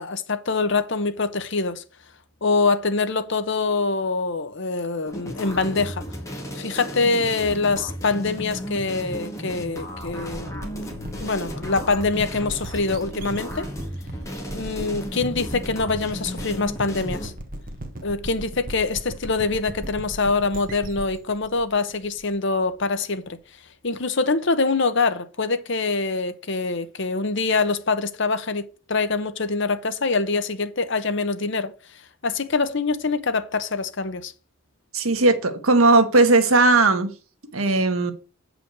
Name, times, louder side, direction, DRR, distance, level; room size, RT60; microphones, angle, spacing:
voice 1, 0.0-1.8 2.4-6.0 6.6-10.8 11.2-13.7 14.5-17.3 18.0-23.4 23.8-31.7 32.2-34.3, left 3 dB, 60° left, 1.0 m, -24 dB
sound 1, 5.1-17.3, equal, 15° left, 1.7 m, -35 dB
sound 2, 10.0-22.7, right 1 dB, 40° right, 1.4 m, -38 dB
voice 2, 34.9-37.1 37.5-38.1, right 3 dB, 85° right, 1.4 m, -17 dB
8.2 x 5.0 x 6.3 m
head